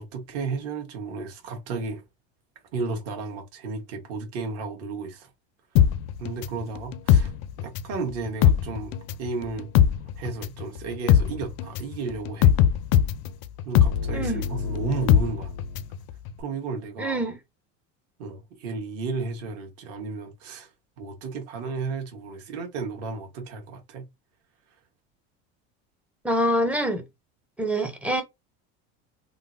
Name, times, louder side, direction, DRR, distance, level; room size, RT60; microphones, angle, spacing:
voice 1, 0.0-2.0 2.7-5.3 6.2-7.3 7.6-9.7 10.2-12.5 13.6-15.5 16.4-17.3 18.2-20.7 21.0-24.1, right 4 dB, 50° right, 1.2 m, -33 dB
sound 1, 5.8-8.0 8.3-16.0 16.3-16.4, left 10 dB, 60° left, 0.4 m, -21 dB
voice 2, 17.0-17.4 26.2-27.0 27.6-28.2, equal, 5° right, 0.5 m, -25 dB
3.7 x 2.0 x 2.6 m
cardioid pair, 155°, 30 cm